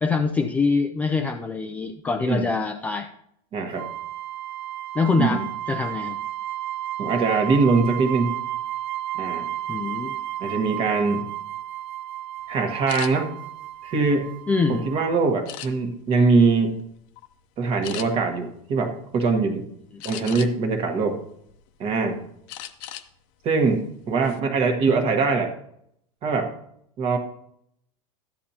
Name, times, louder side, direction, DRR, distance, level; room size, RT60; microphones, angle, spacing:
voice 1, 0.0-3.1 4.9-5.4 5.7-6.2 9.7-10.2 14.5-14.8, left 4 dB, 10° left, 4 dB, 0.4 m, -24 dB
voice 2, 3.5-3.9 5.2-5.4 7.0-8.4 9.1-9.5 10.4-11.3 12.5-13.3 13.8-14.3 14.7-16.8 17.6-19.7 20.0-21.2 21.8-22.2 23.4-25.5 26.2-26.5 27.0-27.2, right 4 dB, 30° right, 5 dB, 1.4 m, -22 dB
sound 1, 3.8-15.2, right 13 dB, 55° right, 0.6 m, -33 dB
sound 2, 12.9-13.1 13.7-14.7 15.5-16.0 16.6-16.8 17.2-17.3 17.8-18.1 20.0-20.7 21.2-22.0 22.5-23.1 23.4-23.6 24.0-24.4, left 12 dB, 45° left, 0.8 m, -37 dB
13.5 x 9.5 x 2.8 m, 0.73 s
supercardioid pair, 165°, 18 cm